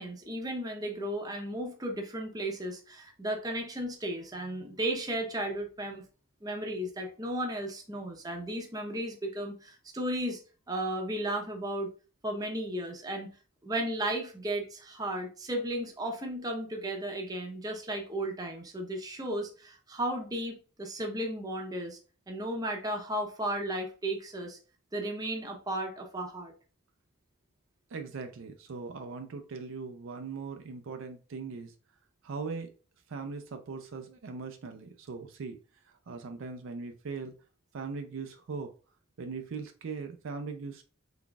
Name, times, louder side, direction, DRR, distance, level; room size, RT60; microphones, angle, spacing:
voice 1, 0.0-6.0 6.4-10.4 10.7-11.9 12.2-13.3 13.6-22.0 22.3-24.6 24.9-26.5, right 1 dB, 15° right, 2 dB, 0.7 m, -34 dB
voice 2, 27.9-31.7 32.2-32.7 33.1-35.6 35.8-37.3 37.7-38.7 39.2-40.8, right 4 dB, 60° right, 6 dB, 0.4 m, -40 dB
3.9 x 3.5 x 2.3 m, 0.36 s
head